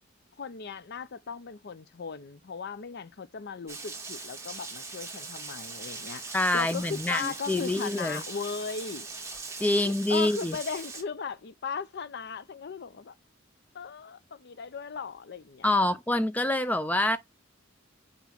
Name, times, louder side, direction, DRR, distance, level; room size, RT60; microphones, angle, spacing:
voice 1, 0.4-9.1 9.7-13.1 13.7-15.9, left 5 dB, 55° left, 0.5 m, -37 dB
Rain, 3.7-11.0, right 4 dB, 15° right, 1.7 m, -41 dB
voice 2, 6.3-8.2 9.6-10.6 15.6-17.2, left 1 dB, 10° left, 0.3 m, -26 dB
6.9 x 3.0 x 5.8 m
head